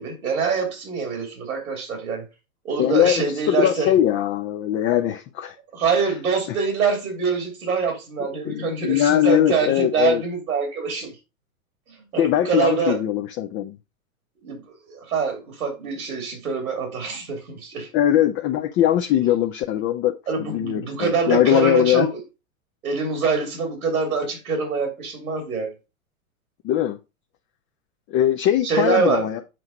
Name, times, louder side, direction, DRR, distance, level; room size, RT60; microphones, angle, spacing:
voice 1, 0.0-2.3 2.6-3.9 5.7-11.1 12.1-13.0 14.4-17.9 20.3-22.2 22.8-25.7 28.6-29.3, right 5 dB, 90° right, 2.7 m, -25 dB
voice 2, 2.8-5.6 8.4-10.2 12.2-13.8 17.9-22.1 26.6-27.0 28.1-29.4, left 11 dB, 30° left, 0.5 m, -21 dB
7.6 x 4.7 x 3.9 m
hypercardioid pair, 125°, 43 cm